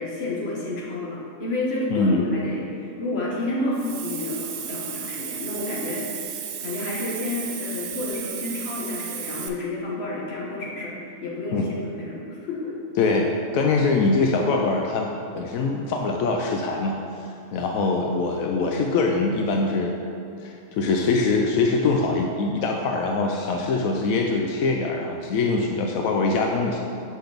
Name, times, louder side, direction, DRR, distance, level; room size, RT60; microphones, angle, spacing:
voice 1, 0.0-6.3 6.6-12.7, left 2 dB, 50° left, -4 dB, 1.5 m, -30 dB
voice 2, 1.9-2.2 11.5-11.7 13.0-20.0 20.4-26.8, left 3 dB, 85° left, 1 dB, 1.0 m, -23 dB
Hiss, 3.7-9.5, right 8 dB, 65° right, 0.6 m, -34 dB
7.7 x 5.8 x 3.4 m, 2.6 s
omnidirectional pair, 1.4 m